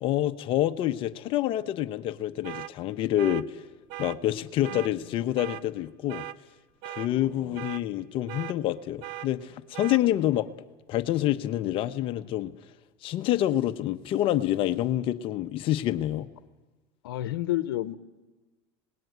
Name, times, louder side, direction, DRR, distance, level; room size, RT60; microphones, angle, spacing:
voice 1, 0.0-3.6 4.0-6.2 6.8-10.5 10.9-12.5 13.0-16.3, left 13 dB, 45° left, 10 dB, 1.0 m, -27 dB
sound 1, 2.4-2.7 3.2-3.4 3.9-4.2 4.6-4.9 5.4-5.6 6.1-6.4 6.8-7.1 7.6-7.8 8.3-8.6 9.0-9.3 9.7-10.0, right 14 dB, 65° right, 0.8 m, -38 dB
voice 2, 7.2-7.7 17.0-18.0, left 14 dB, 90° left, 12 dB, 0.9 m, -31 dB
26.0 x 19.5 x 9.4 m, 1.2 s
supercardioid pair, 125°, 12 cm